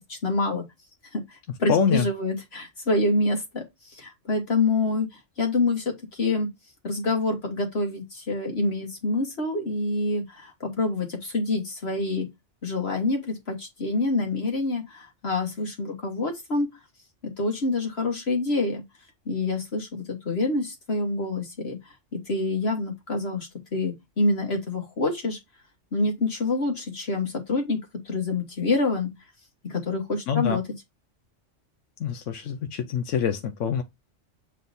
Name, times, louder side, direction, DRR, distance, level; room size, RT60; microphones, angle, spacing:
voice 1, 0.1-0.6 1.1-6.5 6.8-12.3 12.6-16.7 17.2-18.8 19.2-25.4 25.9-27.8 28.0-29.1 29.6-30.6, left 2 dB, 60° left, 1.5 m, -27 dB
voice 2, 1.7-2.1 30.3-30.6 32.0-33.8, left 7 dB, 85° left, 1.0 m, -25 dB
7.4 x 3.3 x 4.0 m
omnidirectional pair, 1.2 m